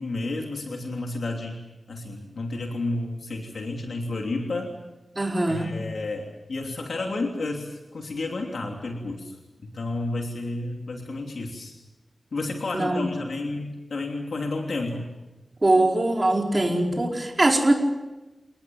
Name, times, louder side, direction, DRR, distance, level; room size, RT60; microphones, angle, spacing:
voice 1, 0.0-1.6 1.9-4.7 5.5-9.3 9.6-11.8 12.3-15.1, left 2 dB, 80° left, 1 dB, 3.1 m, -31 dB
voice 2, 5.1-5.7 12.7-13.0 15.6-17.7, right 2 dB, 30° right, 1 dB, 4.8 m, -22 dB
29.5 x 19.0 x 7.4 m, 1.1 s
wide cardioid pair, 100°, 0 cm